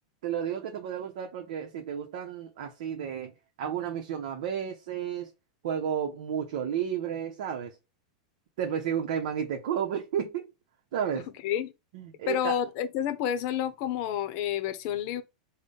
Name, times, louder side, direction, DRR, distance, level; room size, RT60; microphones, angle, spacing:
voice 1, 0.2-3.3 3.6-5.3 5.6-7.7 8.6-10.5 10.9-11.3 11.9-12.6, right 8 dB, 70° right, 0.7 m, -32 dB
voice 2, 12.3-15.2, left 10 dB, 50° left, 0.7 m, -29 dB
3.8 x 2.1 x 3.4 m
supercardioid pair, 135°, 4 cm